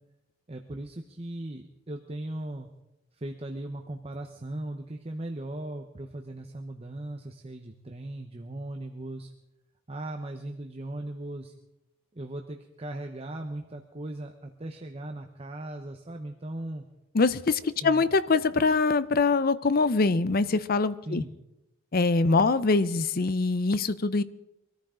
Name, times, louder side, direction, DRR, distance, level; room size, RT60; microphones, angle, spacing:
voice 1, 0.5-2.7 3.1-9.3 9.9-11.5 12.1-16.9 17.8-18.0 21.0-21.3, right 1 dB, 30° right, 4 dB, 0.9 m, -38 dB
voice 2, 17.1-21.2 21.9-24.2, left 3 dB, 50° left, 14 dB, 0.6 m, -24 dB
23.5 x 14.0 x 3.8 m, 0.92 s
head